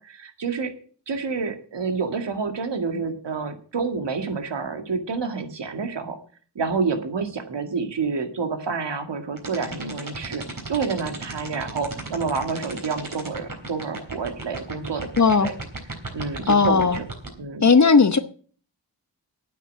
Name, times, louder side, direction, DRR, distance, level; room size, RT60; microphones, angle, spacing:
voice 1, 0.2-0.7 1.1-6.2 6.6-15.5 16.1-17.0 17.4-17.7, right 4 dB, 75° right, 2.1 m, -28 dB
sound 1, 9.4-17.3, right 3 dB, 50° right, 3.8 m, -34 dB
voice 2, 15.2-15.5 16.5-17.0 17.6-18.2, left 4 dB, 40° left, 1.0 m, -16 dB
9.3 x 9.2 x 7.5 m
wide cardioid pair, 70°, 43 cm